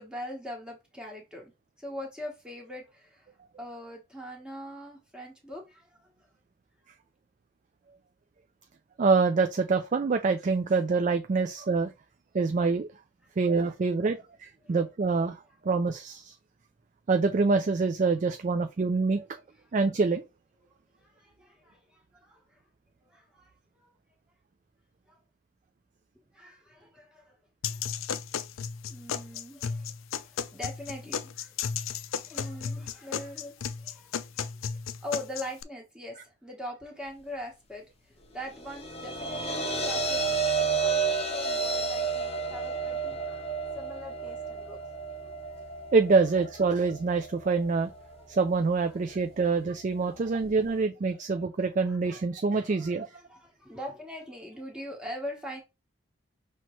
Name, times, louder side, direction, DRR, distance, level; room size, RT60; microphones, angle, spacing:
voice 1, 0.0-1.5 1.8-3.3 3.6-6.0 14.6-14.8 21.0-22.6 23.0-23.9 25.1-25.2 26.3-27.3 27.7-28.0 28.8-29.9 30.2-31.5 32.2-37.8 38.3-44.8 45.2-45.3 46.7-46.8 47.9-48.2 49.4-49.6 50.1-50.4 51.8-52.2 52.5-55.6, left 1 dB, 5° right, 1.1 m, -42 dB
voice 2, 9.0-11.9 12.3-12.9 13.4-15.4 15.6-16.3 17.1-19.2 19.7-20.2 45.9-47.9 48.3-53.1, right 4 dB, 40° right, 0.3 m, -25 dB
sound 1, 27.6-35.6, left 7 dB, 85° left, 0.4 m, -34 dB
sound 2, 38.5-50.8, right 4 dB, 30° left, 0.8 m, -32 dB
5.8 x 2.9 x 3.0 m
head